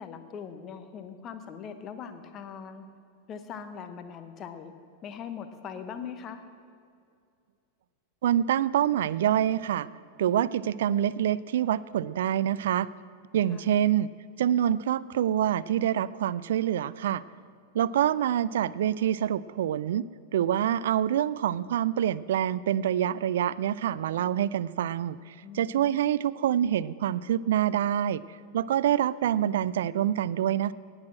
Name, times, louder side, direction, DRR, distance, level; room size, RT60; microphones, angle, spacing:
voice 1, 0.0-2.9 3.3-4.7 5.0-6.4 13.5-13.8 25.4-26.0, left 7 dB, 30° left, 9 dB, 0.9 m, -41 dB
voice 2, 8.2-9.9 10.2-12.9 13.3-14.1 14.4-17.2 17.7-20.1 20.3-28.2 28.5-30.7, right 10 dB, 60° right, 19 dB, 0.3 m, -26 dB
18.0 x 6.4 x 7.5 m, 2.3 s
figure-of-eight pair, 90°, 0 cm